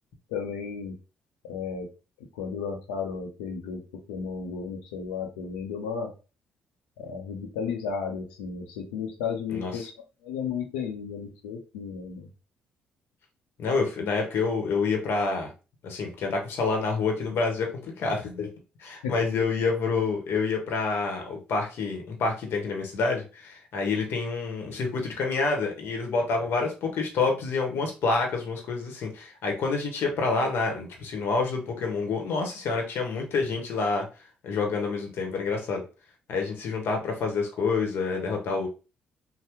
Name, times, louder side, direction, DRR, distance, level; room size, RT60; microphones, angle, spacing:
voice 1, 0.3-1.0 1.4-1.9 2.2-3.8 4.1-6.1 7.0-9.9 10.2-12.3 19.0-19.2, left 6 dB, 85° left, 3 dB, 0.7 m, -33 dB
voice 2, 9.5-9.9 13.6-15.5 15.8-18.5 18.8-34.0 34.4-35.8 36.3-38.7, left 4 dB, 65° left, 2 dB, 1.0 m, -28 dB
2.8 x 2.1 x 3.5 m, 0.32 s
hypercardioid pair, 50°, 4 cm